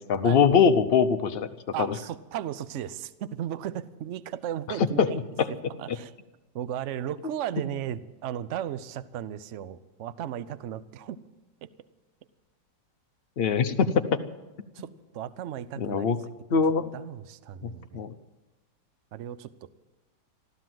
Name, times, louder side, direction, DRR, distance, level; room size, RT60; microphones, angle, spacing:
voice 1, 0.0-1.5 1.8-1.9 5.0-5.1 5.4-5.5 5.9-6.0 13.4-14.2 14.8-14.9 15.8-16.2 16.5-16.9 17.6-18.1, left 6 dB, 70° left, 8 dB, 0.5 m, -22 dB
voice 2, 1.7-5.2 5.8-6.1 6.5-11.2 11.6-11.7 14.7-16.2 16.9-18.1 19.1-19.7, right 10 dB, 60° right, 15 dB, 0.8 m, -35 dB
14.5 x 12.5 x 7.6 m, 1.1 s
omnidirectional pair, 2.0 m